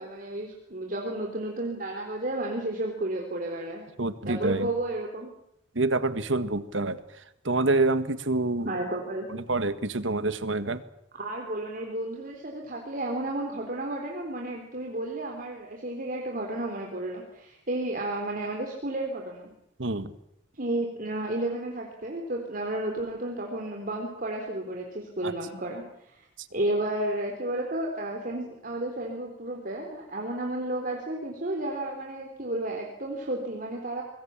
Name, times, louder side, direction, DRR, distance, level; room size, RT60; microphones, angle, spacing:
voice 1, 0.0-3.9 4.3-5.3 8.6-9.3 11.1-19.5 20.5-26.3 26.5-34.0, right 1 dB, 45° right, 1 dB, 3.9 m, -32 dB
voice 2, 4.0-4.7 5.8-7.0 7.5-8.7 9.3-10.8 19.8-20.1 25.2-25.3, right 2 dB, 70° right, 12 dB, 1.7 m, -27 dB
26.0 x 21.5 x 7.4 m, 0.77 s
head